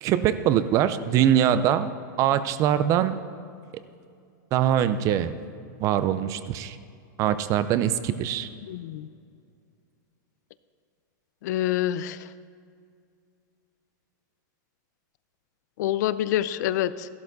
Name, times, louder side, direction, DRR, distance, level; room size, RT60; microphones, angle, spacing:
voice 1, 0.0-1.9 2.2-3.2 4.5-5.4 5.8-6.8 7.2-8.5, right 10 dB, 30° right, 13 dB, 0.5 m, -23 dB
voice 2, 8.6-9.1 11.4-12.3 15.8-17.1, left 12 dB, 60° left, 16 dB, 0.5 m, -27 dB
13.5 x 12.0 x 4.1 m, 2.3 s
supercardioid pair, 155°, 11 cm